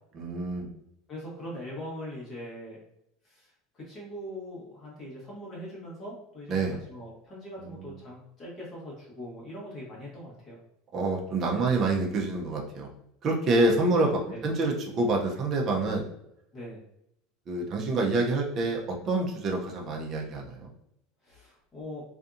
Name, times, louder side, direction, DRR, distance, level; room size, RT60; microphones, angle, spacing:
voice 1, 0.2-0.7 6.5-6.8 10.9-12.9 13.2-16.1 17.5-20.7, right 2 dB, 30° right, 0 dB, 0.5 m, -27 dB
voice 2, 1.1-2.8 3.2-10.6 14.3-14.4 16.5-16.8 21.2-22.0, equal, 25° left, -5 dB, 1.2 m, -41 dB
2.6 x 2.5 x 2.4 m, 0.77 s
supercardioid pair, 155°, 0 cm